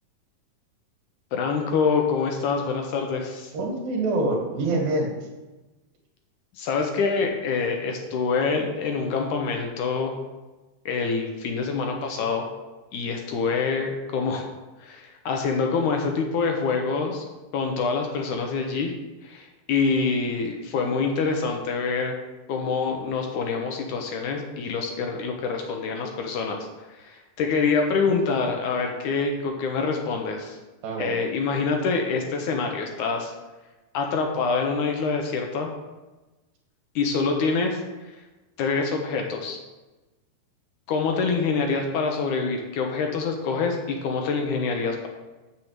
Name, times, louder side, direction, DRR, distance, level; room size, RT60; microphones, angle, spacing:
voice 1, 1.3-3.5 6.6-10.2 10.9-12.5 12.9-14.5 14.8-17.2 17.5-18.9 19.2-22.2 22.5-30.6 31.0-33.3 33.9-35.7 37.0-38.1 38.6-39.6 40.9-45.1, left 4 dB, 70° left, 3 dB, 2.2 m, -26 dB
voice 2, 3.5-5.1 28.1-28.2 30.8-31.2, right 2 dB, 75° right, 1 dB, 3.5 m, -25 dB
7.5 x 6.7 x 7.3 m, 1.1 s
omnidirectional pair, 4.1 m